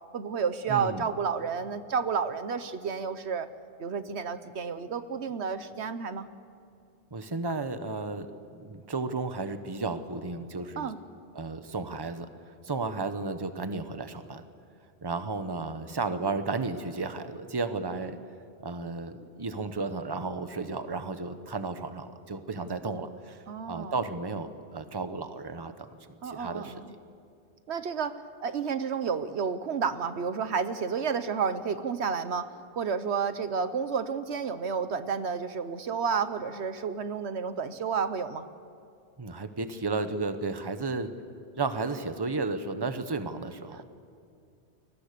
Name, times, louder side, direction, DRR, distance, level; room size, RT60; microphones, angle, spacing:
voice 1, 0.1-3.5 3.8-6.3 10.8-11.0 23.5-24.0 26.2-26.9 27.7-28.1 28.4-38.5, right 6 dB, 75° right, 12 dB, 1.2 m, -31 dB
voice 2, 0.7-1.1 7.1-10.9 11.3-14.4 15.0-18.2 18.6-26.8 39.2-41.2 41.6-43.8, right 3 dB, 25° right, 9 dB, 1.1 m, -33 dB
29.5 x 22.5 x 6.8 m, 2.4 s
omnidirectional pair, 1.1 m